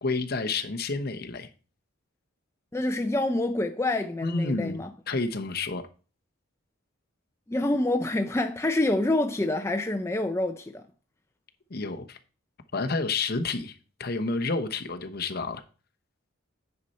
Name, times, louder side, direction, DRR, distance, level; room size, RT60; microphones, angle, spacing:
voice 1, 0.0-1.5 4.2-5.8 11.7-12.2 12.7-15.6, left 3 dB, 50° left, 0.9 m, -30 dB
voice 2, 2.7-4.9 7.5-10.8, left 2 dB, 15° left, 0.4 m, -27 dB
9.6 x 5.5 x 4.2 m
head